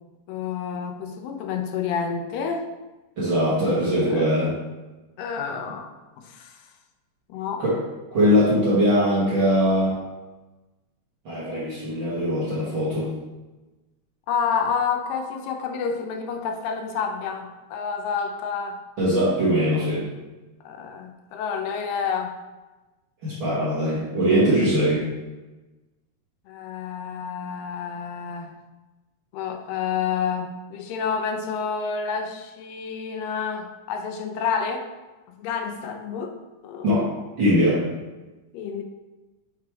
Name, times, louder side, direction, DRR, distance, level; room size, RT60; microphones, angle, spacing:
voice 1, 0.3-2.6 4.1-4.3 5.2-5.9 6.2-6.6 7.3-7.6 14.3-18.8 20.6-22.3 26.5-28.5 29.3-34.9 35.4-36.3 36.6-36.9 38.5-38.8, left 6 dB, 90° left, 5 dB, 2.3 m, -29 dB
voice 2, 3.2-4.6 7.6-7.8 8.1-10.0 11.2-13.1 19.0-20.1 23.2-25.1 36.8-37.1 37.4-37.9, equal, 50° right, -9 dB, 1.5 m, -21 dB
6.2 x 3.3 x 4.6 m, 1.1 s
omnidirectional pair, 3.9 m